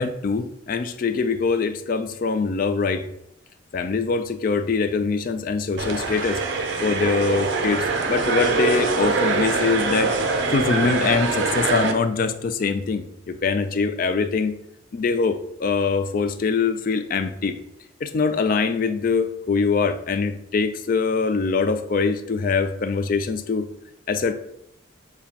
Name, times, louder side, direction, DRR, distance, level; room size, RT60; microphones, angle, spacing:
voice 1, 0.0-3.1 3.7-6.4 6.8-10.1 10.5-14.6 14.9-17.6 18.0-23.7 24.1-24.3, left 4 dB, 45° left, 9 dB, 0.3 m, -23 dB
sound 1, 5.8-11.9, right 4 dB, 60° right, 0.5 m, -23 dB
6.8 x 2.3 x 2.8 m, 0.78 s
head